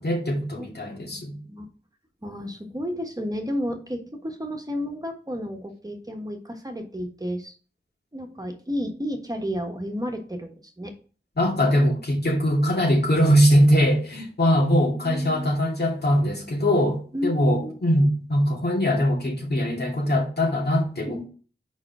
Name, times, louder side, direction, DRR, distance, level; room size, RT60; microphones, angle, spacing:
voice 1, 0.0-1.3 11.4-21.2, equal, 60° left, 2.5 m, -21 dB
voice 2, 0.6-1.7 2.2-7.5 8.1-10.9 15.0-15.5 17.1-17.8 21.0-21.2, equal, 20° right, 1.3 m, -32 dB
5.3 x 4.9 x 6.0 m
wide cardioid pair, 80°, 18 cm